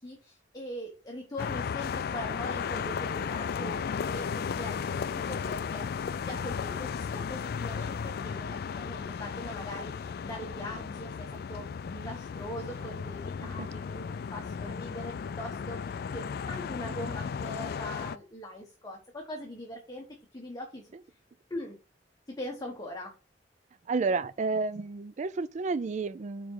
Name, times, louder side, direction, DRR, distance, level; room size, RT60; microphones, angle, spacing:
voice 1, 0.0-20.0 20.3-21.2 21.5-21.8 22.3-23.2, left 1 dB, 20° left, 1.0 m, -41 dB
sound 1, 1.4-18.2, left 6 dB, 55° left, 0.3 m, -35 dB
voice 2, 23.9-26.5, right 4 dB, 40° right, 0.4 m, -31 dB
5.0 x 4.8 x 5.6 m
head